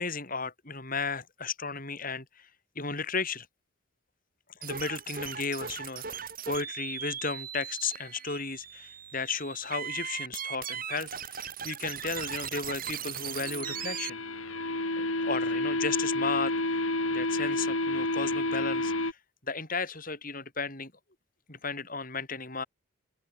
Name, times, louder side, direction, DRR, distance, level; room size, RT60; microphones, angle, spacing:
voice 1, 0.0-2.5 2.8-3.5 4.6-14.2 15.0-16.5 17.1-19.2 19.4-20.9 21.5-22.6, left 4 dB, 40° left, 6.9 m, -34 dB
sound 1, 4.6-14.1, right 8 dB, 40° right, 7.7 m, -38 dB
sound 2, 13.1-19.1, left 2 dB, 80° left, 5.3 m, -30 dB
open air
head